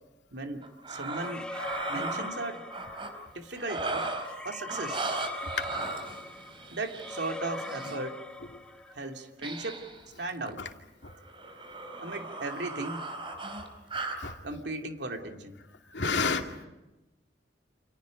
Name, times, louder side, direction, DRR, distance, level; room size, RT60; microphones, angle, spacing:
voice 1, 0.3-1.5 1.9-2.6 3.3-4.1 4.4-5.0 6.7-8.2 9.0-9.8 10.2-10.6 12.0-13.1 14.4-15.5, right 2 dB, 75° right, 2.5 m, -36 dB
sound 1, 0.6-3.1 3.6-4.4 4.7-8.0 9.4-10.0 10.3-10.5 11.1-14.2, right 2 dB, 30° right, 4.1 m, -37 dB
sound 2, 1.1-3.3 4.2-9.1, left 1 dB, 5° left, 1.7 m, -41 dB
voice 2, 1.6-1.9 5.4-5.9 10.6-10.7 11.0-11.1 13.9-14.4 15.9-16.7, left 4 dB, 85° left, 2.5 m, -32 dB
29.5 x 28.0 x 5.2 m
head